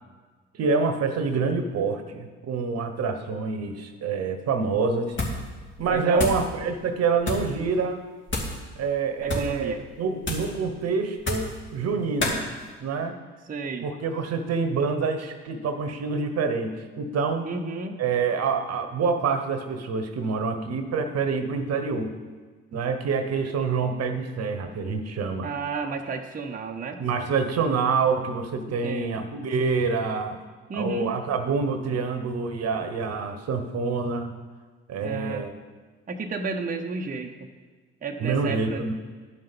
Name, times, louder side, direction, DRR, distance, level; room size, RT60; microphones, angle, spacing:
voice 1, 0.6-5.2 5.8-8.0 8.8-12.4 12.8-13.2 13.8-17.5 18.0-22.1 22.7-25.5 27.0-30.4 30.7-34.3 34.9-35.5 38.2-39.0, right 4 dB, 50° right, 8 dB, 1.1 m, -26 dB
sound 1, 5.1-5.5 5.8-6.5 7.2-7.5 8.3-8.6 9.2-9.6 10.2-10.6 11.2-11.6 12.2-12.4, left 2 dB, 35° left, 2.4 m, -29 dB
voice 2, 5.9-6.4 9.2-9.8 13.5-13.9 17.4-18.0 25.4-27.0 28.7-29.3 30.7-31.2 35.0-35.5 36.1-37.3 38.0-38.9, right 4 dB, 25° right, 2 dB, 0.9 m, -32 dB
11.0 x 5.6 x 5.3 m, 1.4 s
hypercardioid pair, 55°, 32 cm